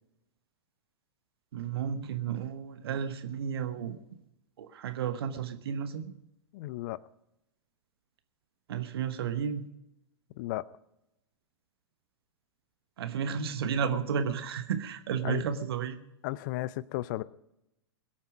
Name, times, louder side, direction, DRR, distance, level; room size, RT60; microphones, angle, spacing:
voice 1, 1.5-4.0 4.6-6.0 8.7-9.7 13.0-16.0, right 7 dB, 60° right, 9 dB, 1.2 m, -32 dB
voice 2, 6.5-7.0 10.4-10.6 15.2-15.4 16.2-17.2, left 17 dB, 45° left, 21 dB, 0.6 m, -34 dB
22.0 x 8.7 x 5.2 m, 0.86 s
figure-of-eight pair, 100°, 15 cm